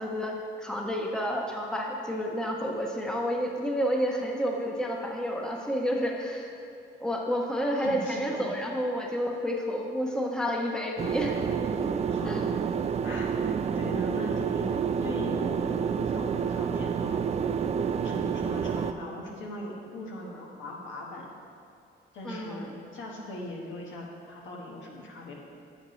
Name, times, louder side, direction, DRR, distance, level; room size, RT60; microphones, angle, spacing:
voice 1, 0.0-6.5 7.0-11.4 12.3-12.4 22.2-22.7, equal, 5° left, 0 dB, 1.0 m, -30 dB
voice 2, 7.8-8.5 12.1-12.6 13.0-13.3 13.7-17.2 18.0-21.2 22.1-25.4, left 1 dB, 75° left, -2 dB, 1.6 m, -39 dB
sound 1, 11.0-18.9, right 7 dB, 35° right, 0.4 m, -29 dB
8.8 x 8.2 x 3.2 m, 2.6 s
cardioid pair, 90°, 20 cm